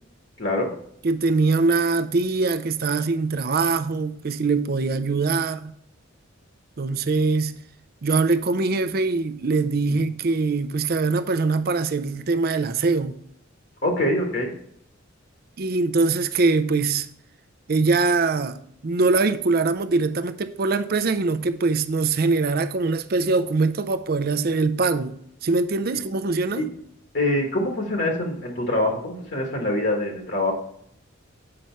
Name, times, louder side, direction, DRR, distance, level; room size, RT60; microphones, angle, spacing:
voice 1, 0.4-0.7 9.9-10.0 13.8-14.5 26.6-26.7 27.1-30.5, left 1 dB, 60° left, 1.4 m, -24 dB
voice 2, 1.0-5.7 6.8-7.5 8.0-13.1 15.6-17.1 17.7-18.6 18.8-25.1 25.4-26.7, right 3 dB, 50° right, 0.5 m, -22 dB
7.7 x 5.4 x 4.4 m
head